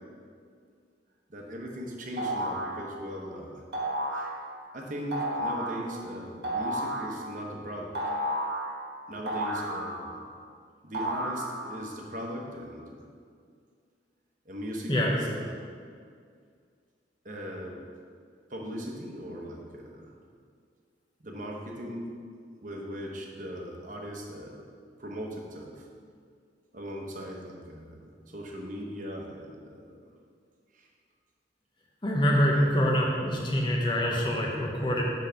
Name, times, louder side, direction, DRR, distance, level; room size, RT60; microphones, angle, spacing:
voice 1, 1.3-3.6 4.1-4.3 4.7-8.0 9.1-10.2 10.8-13.1 14.4-15.6 17.2-17.8 18.5-20.1 21.2-22.1 22.6-24.6 25.0-25.9 26.7-30.1 30.7-30.9 32.5-32.7, equal, 45° right, -1 dB, 1.0 m, -39 dB
sound 1, 2.2-2.7 3.7-4.3 5.1-5.7 6.4-7.1 7.9-8.6 9.3-10.2 10.9-11.8, right 1 dB, 65° right, 1.3 m, -31 dB
voice 2, 32.0-35.0, equal, 25° left, -2 dB, 1.1 m, -25 dB
7.1 x 4.0 x 5.7 m, 2.1 s
head